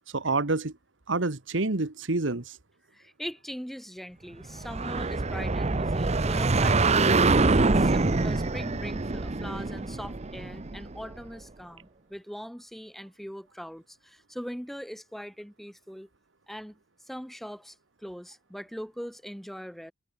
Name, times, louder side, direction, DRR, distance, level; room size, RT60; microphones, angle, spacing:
voice 1, 0.1-0.7 1.1-2.6, right 3 dB, 75° right, 1.5 m, -27 dB
voice 2, 2.9-16.1 16.5-19.9, equal, ahead, 4.4 m, -41 dB
sound 1, 4.5-11.1, right 3 dB, 35° right, 0.9 m, -25 dB
head